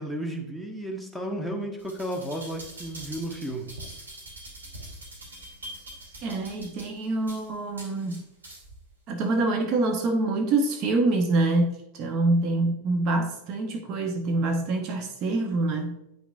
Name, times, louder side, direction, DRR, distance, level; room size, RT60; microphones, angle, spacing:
voice 1, 0.0-3.7, right 1 dB, ahead, 1.1 m, -33 dB
sound 1, 1.8-8.8 9.2-9.3, right 1 dB, 70° right, 2.7 m, -44 dB
voice 2, 6.2-8.3 9.1-16.0, right 2 dB, 35° right, 0.8 m, -26 dB
9.2 x 5.9 x 2.4 m
figure-of-eight pair, 90°, 0 cm